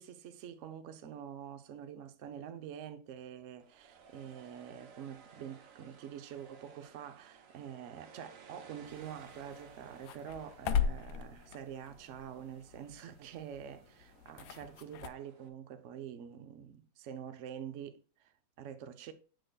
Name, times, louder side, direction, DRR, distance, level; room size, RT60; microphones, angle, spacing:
voice 1, 0.0-19.1, right 9 dB, 70° right, 0.7 m, -46 dB
sound 1, 3.6-15.5, right 6 dB, 55° right, 1.0 m, -58 dB
sound 2, 8.8-15.1, left 7 dB, 75° left, 0.9 m, -39 dB
8.1 x 6.4 x 2.3 m
omnidirectional pair, 2.2 m